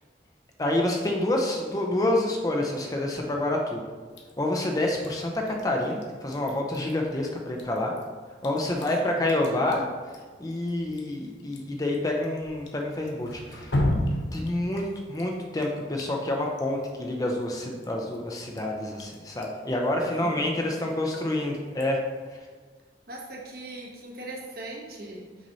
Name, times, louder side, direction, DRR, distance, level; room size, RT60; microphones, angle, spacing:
voice 1, 0.6-3.8 4.4-7.9 8.4-13.7 14.3-22.0 22.3-22.5, left 1 dB, 20° left, 1 dB, 0.5 m, -28 dB
Drip, 4.1-22.4, left 1 dB, 85° left, 0.9 m, -37 dB
voice 2, 20.0-20.9 23.1-25.5, right 1 dB, 55° right, -1 dB, 1.2 m, -40 dB
6.2 x 4.1 x 4.0 m, 1.5 s
head